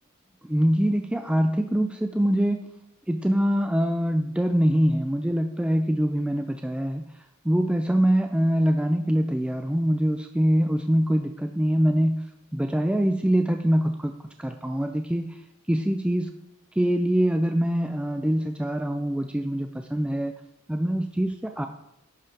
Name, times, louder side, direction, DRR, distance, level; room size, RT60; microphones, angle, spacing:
voice 1, 0.4-2.6 3.1-7.1 7.4-12.2 12.5-14.1 14.4-15.4 15.7-16.3 16.8-20.3 20.7-21.7, equal, 5° right, 5 dB, 0.4 m, -24 dB
11.0 x 5.6 x 5.1 m, 0.82 s
head